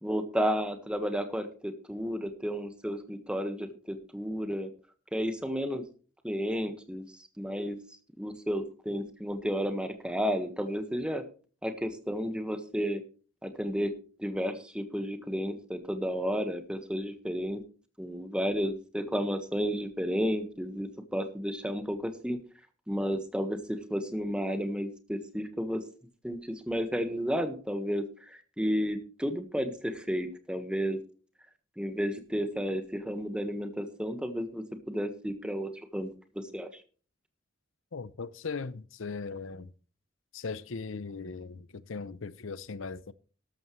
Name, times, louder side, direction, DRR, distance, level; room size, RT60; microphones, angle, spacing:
voice 1, 0.0-4.7 5.1-5.9 6.2-7.1 7.4-7.8 8.2-11.2 11.6-13.0 13.4-13.9 14.2-17.6 18.0-22.4 22.9-25.8 26.2-31.0 31.8-36.8, equal, 5° right, 1.4 m, -32 dB
voice 2, 37.9-39.7 40.3-43.1, left 4 dB, 80° left, 0.7 m, -38 dB
13.0 x 13.0 x 3.2 m
head